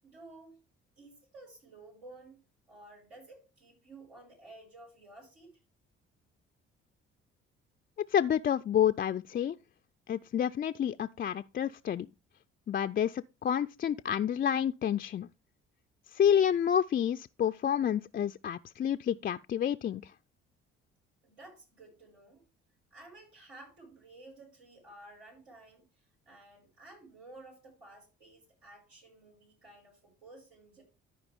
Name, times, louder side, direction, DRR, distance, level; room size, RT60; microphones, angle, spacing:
voice 1, 0.0-0.6 1.0-2.4 2.7-5.6 21.2-22.4 22.9-30.8, right 2 dB, 85° right, 5.9 m, -53 dB
voice 2, 8.1-9.5 10.1-12.1 12.7-15.3 16.1-20.1, left 9 dB, 30° left, 0.4 m, -29 dB
13.5 x 4.8 x 3.5 m
hypercardioid pair, 55°, 31 cm